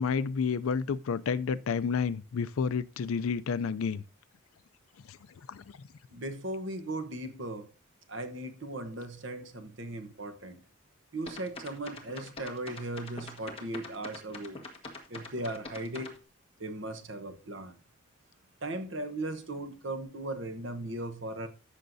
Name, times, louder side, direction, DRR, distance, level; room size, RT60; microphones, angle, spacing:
voice 1, 0.0-4.0 5.1-5.2 5.5-5.6, left 5 dB, 75° left, 0.4 m, -30 dB
voice 2, 6.1-7.7 8.1-10.6 11.1-14.6 15.1-16.2 16.6-17.8 18.6-21.5, right 1 dB, 60° right, 1.0 m, -37 dB
sound 1, 11.3-16.2, left 2 dB, 25° left, 1.5 m, -43 dB
13.5 x 6.5 x 2.7 m
head